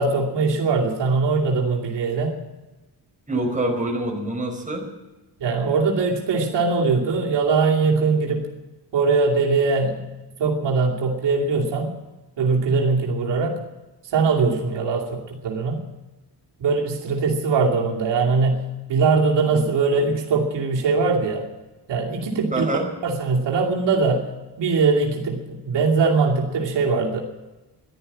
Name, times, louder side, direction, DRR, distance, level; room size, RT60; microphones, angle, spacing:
voice 1, 0.0-2.4 5.4-8.5 8.9-10.1 10.4-11.9 12.4-13.6 14.0-15.8 16.6-18.6 18.9-21.5 21.9-22.7 23.0-24.3 24.6-27.2, right 4 dB, 90° right, -1 dB, 2.7 m, -21 dB
voice 2, 3.3-4.9 19.5-19.7 22.5-22.9, right 1 dB, 20° right, 1 dB, 4.8 m, -26 dB
14.0 x 12.0 x 8.5 m, 1.1 s
cardioid pair, 95°, 41 cm